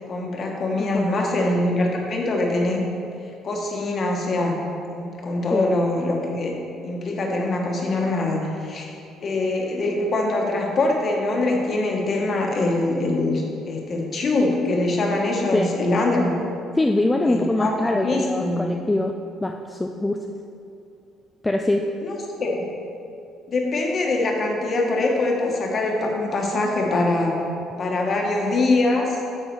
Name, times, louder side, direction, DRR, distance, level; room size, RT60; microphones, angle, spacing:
voice 1, 0.1-2.9 3.4-4.6 4.9-6.5 6.8-16.3 17.2-18.7 22.0-22.6 23.5-27.4 27.8-29.2, left 2 dB, 35° left, 0 dB, 1.4 m, -23 dB
voice 2, 0.8-1.3 5.5-5.7 15.5-15.7 16.8-19.1 19.4-20.2 21.4-21.8, left 2 dB, 10° left, 3 dB, 0.3 m, -23 dB
9.4 x 7.3 x 4.7 m, 2.6 s
cardioid pair, 165°, 0 cm